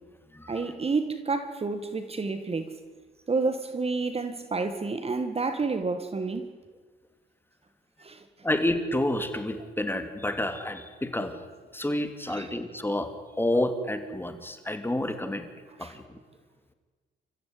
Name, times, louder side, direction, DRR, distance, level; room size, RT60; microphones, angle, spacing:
voice 1, 0.5-2.8 3.3-6.5 8.0-8.2 12.3-12.5 15.8-16.0, right 4 dB, 30° right, 2.0 m, -29 dB
voice 2, 8.4-11.4 11.7-13.1 13.4-15.4 15.8-16.0, left 1 dB, 10° left, 2.8 m, -29 dB
29.5 x 15.0 x 9.7 m
cardioid pair, 90°, 20 cm